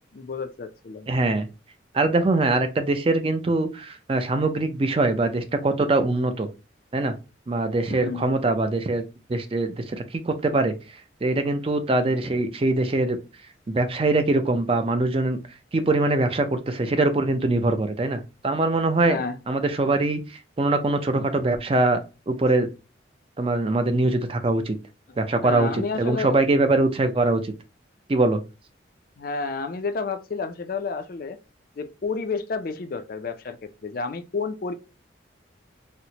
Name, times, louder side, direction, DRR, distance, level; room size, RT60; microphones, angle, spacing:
voice 1, 0.0-1.1 7.9-8.3 19.1-19.4 25.4-26.4 29.2-31.4 31.8-34.7, left 4 dB, 50° left, 0.4 m, -30 dB
voice 2, 1.1-1.5 1.9-6.5 6.9-7.2 7.5-9.0 9.3-10.7 11.2-13.2 13.7-15.4 15.7-19.2 19.5-22.0 22.3-22.7 23.4-24.8 25.2-27.5 28.1-28.4, right 2 dB, 30° right, 0.4 m, -23 dB
4.2 x 2.0 x 2.7 m
head